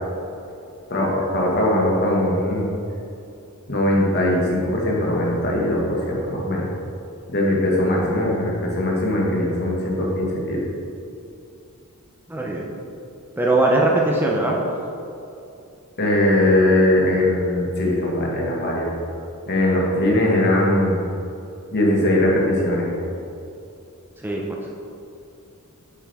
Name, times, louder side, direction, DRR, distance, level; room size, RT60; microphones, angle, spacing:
voice 1, 0.9-2.7 3.7-6.7 7.3-10.7 16.0-18.9 19.5-21.0 21.7-22.9, left 1 dB, 50° left, -3 dB, 1.9 m, -20 dB
voice 2, 12.3-12.7 13.4-14.6 24.2-24.4, right 2 dB, 10° right, -2 dB, 0.7 m, -20 dB
8.8 x 7.5 x 3.6 m, 2.7 s
head